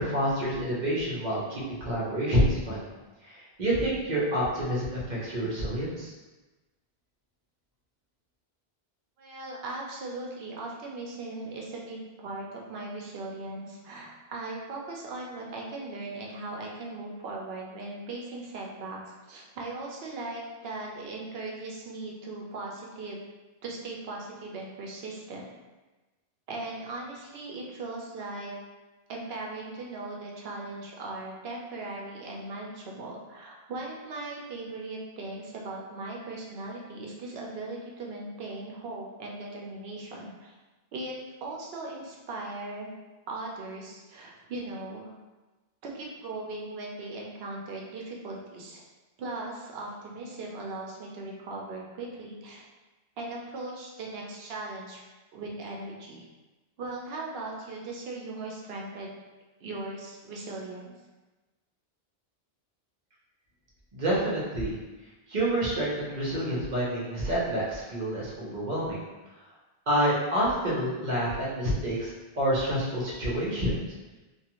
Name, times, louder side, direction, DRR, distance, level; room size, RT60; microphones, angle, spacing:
voice 1, 0.0-2.8 3.2-6.1 63.9-64.7 65.3-69.0 69.9-73.8, equal, 50° right, -6 dB, 0.8 m, -28 dB
voice 2, 9.2-23.3 23.6-25.4 26.5-28.5 29.1-40.5 40.9-42.9 43.3-45.1 45.8-48.8 49.2-52.6 53.2-55.0 55.3-56.2 56.8-59.2 59.6-60.9, right 2 dB, 75° right, -2 dB, 0.8 m, -38 dB
2.4 x 2.3 x 2.9 m, 1.2 s
omnidirectional pair, 1.0 m